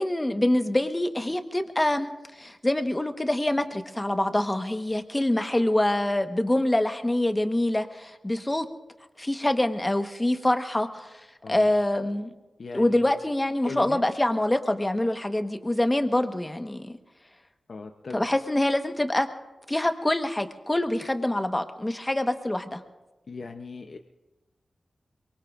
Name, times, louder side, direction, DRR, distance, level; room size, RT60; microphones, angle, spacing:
voice 1, 0.0-8.6 9.2-11.2 11.5-12.3 12.7-17.0 18.1-19.3 19.7-22.8, left 1 dB, 20° left, 7 dB, 1.2 m, -25 dB
voice 2, 11.4-11.8 12.6-13.1 13.6-14.0 17.7-18.2 23.3-24.0, left 4 dB, 65° left, 5 dB, 0.7 m, -38 dB
23.0 x 23.0 x 2.5 m, 1.1 s
cardioid pair, 70°, 0 cm